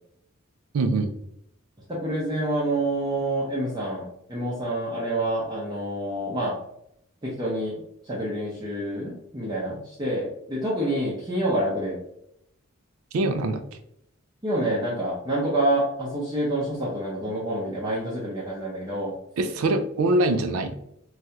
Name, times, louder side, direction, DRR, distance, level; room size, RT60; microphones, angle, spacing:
voice 1, 0.7-1.1 13.1-13.6 19.4-20.8, right 2 dB, 85° right, 8 dB, 0.4 m, -23 dB
voice 2, 1.9-6.5 7.2-7.8 8.0-12.0 14.4-19.1, right 1 dB, 20° right, -6 dB, 0.6 m, -27 dB
3.2 x 2.3 x 2.7 m, 0.76 s
head